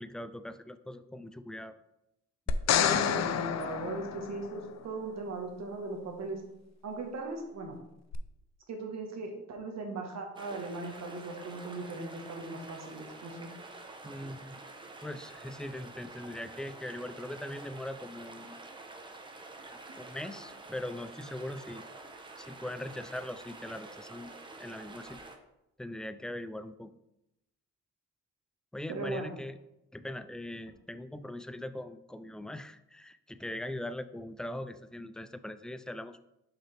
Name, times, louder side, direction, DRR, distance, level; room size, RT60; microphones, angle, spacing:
voice 1, 0.0-1.8 14.0-14.6 15.0-18.6 20.0-21.8 22.4-24.3 24.6-25.2 25.8-26.9 28.7-29.6 29.9-36.2, left 1 dB, ahead, 11 dB, 0.3 m, -41 dB
sound 1, 2.5-4.8 8.1-8.2, left 9 dB, 60° left, 0.5 m, -29 dB
voice 2, 2.7-6.4 6.8-7.8 8.7-13.5 28.9-29.3, right 3 dB, 60° right, 2 dB, 1.4 m, -38 dB
sound 2, 10.3-25.4, right 2 dB, 15° right, 0.8 m, -48 dB
6.0 x 5.5 x 3.4 m, 0.86 s
cardioid pair, 90°, 30 cm